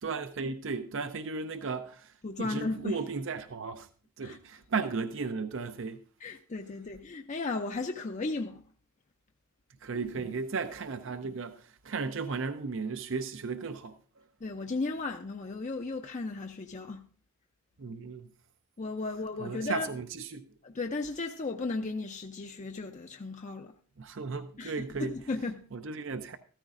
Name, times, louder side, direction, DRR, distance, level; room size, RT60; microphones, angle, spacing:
voice 1, 0.0-2.1 2.4-3.9 4.2-6.0 9.8-13.9 17.8-18.3 19.4-20.4 24.0-25.2 25.7-26.4, right 4 dB, 55° right, 0.6 m, -35 dB
voice 2, 2.2-3.0 4.2-4.4 6.2-8.6 9.9-10.0 10.3-10.4 14.4-17.0 18.8-19.9 20.6-23.7 24.6-25.6, left 3 dB, 35° left, 0.5 m, -35 dB
14.5 x 13.5 x 2.5 m
head